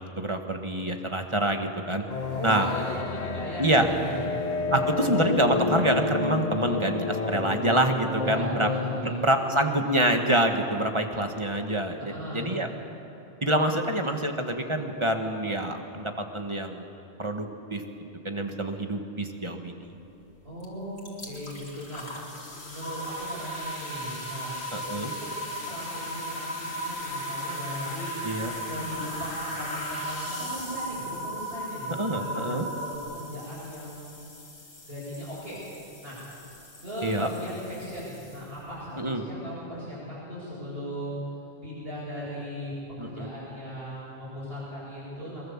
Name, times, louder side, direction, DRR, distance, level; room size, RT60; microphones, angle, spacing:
voice 1, 0.0-2.0 2.4-2.7 3.6-3.9 4.7-8.7 9.0-12.7 13.4-16.9 17.2-17.8 18.2-19.9 24.7-25.1 28.2-28.5 32.0-32.7 37.0-37.3 39.0-39.2 43.0-43.3, right 1 dB, 25° right, 4 dB, 1.6 m, -26 dB
sound 1, 2.1-9.0, left 4 dB, 40° left, 1.0 m, -30 dB
voice 2, 2.3-4.3 4.6-4.9 8.1-9.2 11.9-12.6 20.4-22.1 22.6-24.5 24.9-28.1 28.7-34.1 34.8-35.6 36.0-36.2 36.8-41.2 41.6-42.7 43.0-45.4, equal, 65° right, -10 dB, 7.8 m, -37 dB
sound 2, 20.6-20.7 21.0-38.7, left 1 dB, 75° left, 3.4 m, -42 dB
sound 3, 22.8-33.0, right 1 dB, 90° right, 2.5 m, -36 dB
23.0 x 22.5 x 7.4 m, 2.8 s
omnidirectional pair, 1.1 m